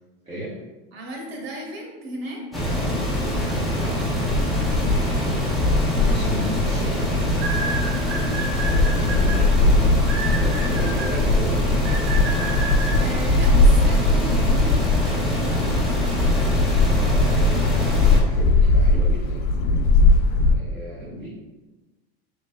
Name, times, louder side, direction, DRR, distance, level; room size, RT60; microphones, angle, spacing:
voice 1, 0.2-0.6 3.8-4.0 4.7-7.1 8.4-11.9 17.0-19.5 20.5-21.3, equal, 20° right, -10 dB, 1.4 m, -35 dB
voice 2, 0.9-2.7 13.0-15.9, right 1 dB, 80° right, -1 dB, 1.5 m, -35 dB
sound 1, 2.5-18.2, equal, ahead, 0.9 m, -25 dB
sound 2, 4.1-20.5, left 2 dB, 50° left, 0.5 m, -20 dB
sound 3, 7.4-9.4 10.1-11.1 11.8-12.9, right 4 dB, 55° right, 1.4 m, -30 dB
5.8 x 3.2 x 2.2 m, 1.1 s
supercardioid pair, 125°, 31 cm